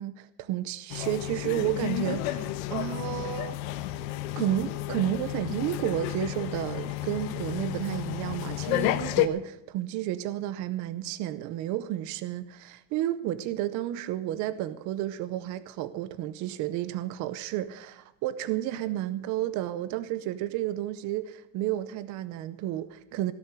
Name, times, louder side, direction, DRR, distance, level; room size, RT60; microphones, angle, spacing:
voice 1, 0.0-3.7 4.4-23.3, right 13 dB, 45° right, 0.7 m, -31 dB
sound 1, 0.9-9.3, left 14 dB, 80° left, 1.2 m, -31 dB
17.5 x 7.2 x 9.9 m
cardioid pair, 170°, 41 cm